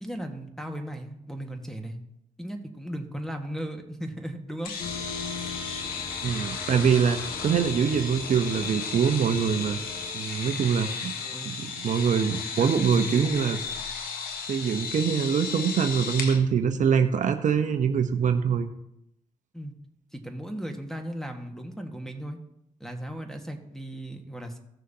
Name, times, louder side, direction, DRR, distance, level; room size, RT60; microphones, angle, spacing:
voice 1, 0.0-2.0 2.4-4.7 11.0-11.5 12.4-13.5 19.5-19.7 20.1-22.4 22.8-24.6, right 1 dB, 5° left, 4 dB, 1.5 m, -36 dB
sound 1, 4.6-16.4, left 5 dB, 85° left, 1.1 m, -34 dB
sound 2, 4.8-10.1, left 3 dB, 55° left, 1.5 m, -40 dB
voice 2, 6.2-9.8 10.1-11.1 11.5-13.6 14.5-18.7, right 7 dB, 60° right, 8 dB, 0.7 m, -24 dB
15.5 x 6.3 x 2.8 m, 0.80 s
cardioid pair, 65°, 15 cm